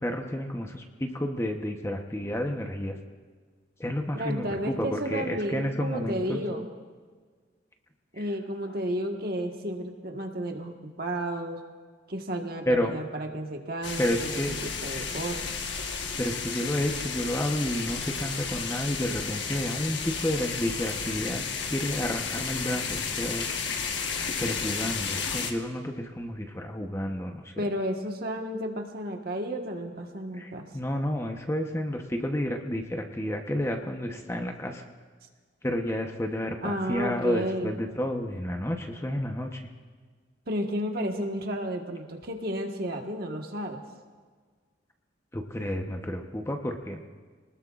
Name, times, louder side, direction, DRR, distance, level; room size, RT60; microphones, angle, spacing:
voice 1, 0.0-3.0 3.8-6.4 8.2-8.3 12.7-12.9 14.0-14.6 16.2-21.4 21.7-23.5 24.4-27.7 30.3-34.8 35.6-39.7 45.3-47.0, equal, 15° left, 3 dB, 1.0 m, -30 dB
voice 2, 4.1-6.7 8.1-11.6 12.1-15.5 27.6-30.6 36.6-37.8 40.5-43.8, equal, 50° right, 2 dB, 1.5 m, -32 dB
sound 1, 13.8-25.5, left 5 dB, 65° left, 1.4 m, -33 dB
27.0 x 19.5 x 2.5 m, 1.5 s
head